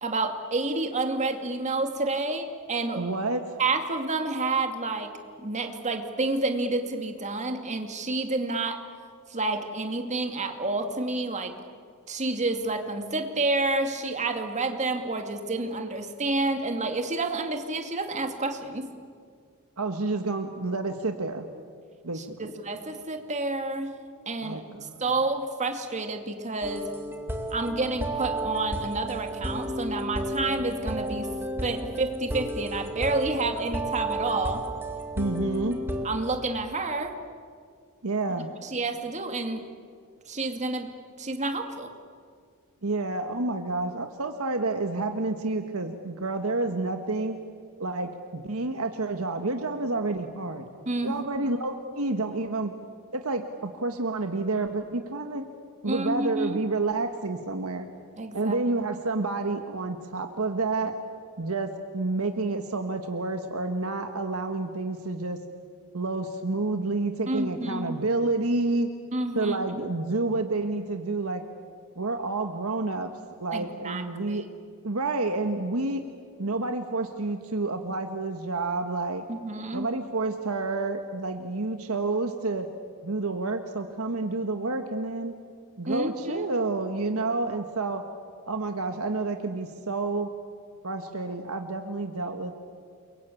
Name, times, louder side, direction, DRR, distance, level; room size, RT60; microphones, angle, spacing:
voice 1, 0.0-3.0 3.6-8.8 9.3-11.5 12.1-18.9 22.1-24.0 24.3-24.6 25.0-26.9 27.5-31.4 31.6-34.7 36.0-37.1 38.6-39.7 40.3-41.9 50.9-51.2 55.9-56.6 58.2-58.6 67.3-68.0 69.1-69.6 73.5-74.5 79.3-79.9 85.9-86.5, right 2 dB, 35° right, 5 dB, 2.4 m, -29 dB
voice 2, 2.9-3.4 19.8-21.5 22.0-22.5 24.4-25.0 35.1-35.8 38.0-38.5 42.8-47.4 47.8-50.7 51.0-52.7 53.1-55.4 55.8-57.9 58.3-60.9 61.4-65.4 65.9-68.9 69.3-71.4 71.9-73.1 73.4-74.4 74.8-76.0 76.4-79.2 79.7-82.7 83.0-85.3 85.8-88.0 88.5-90.3 90.8-92.5, right 3 dB, 75° right, 6 dB, 1.6 m, -29 dB
sound 1, 26.6-36.1, right 1 dB, 10° right, 2.4 m, -32 dB
29.5 x 23.0 x 8.6 m, 2.1 s
head